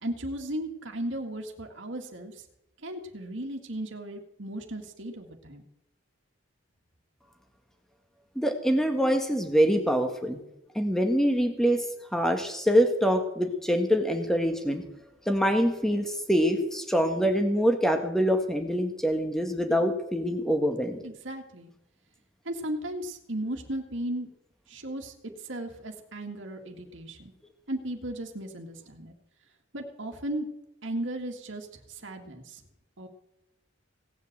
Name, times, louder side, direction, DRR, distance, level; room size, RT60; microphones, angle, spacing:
voice 1, 0.0-2.4 2.8-5.6 21.0-21.7 22.4-24.3 24.7-25.1 25.4-27.3 27.7-29.1 29.7-30.5 30.8-32.6 33.0-33.1, right 1 dB, 70° right, 3 dB, 1.9 m, -36 dB
voice 2, 8.3-10.4 10.7-11.8 12.1-14.8 15.2-21.0, equal, ahead, 5 dB, 1.6 m, -25 dB
17.5 x 8.0 x 7.8 m, 0.86 s
head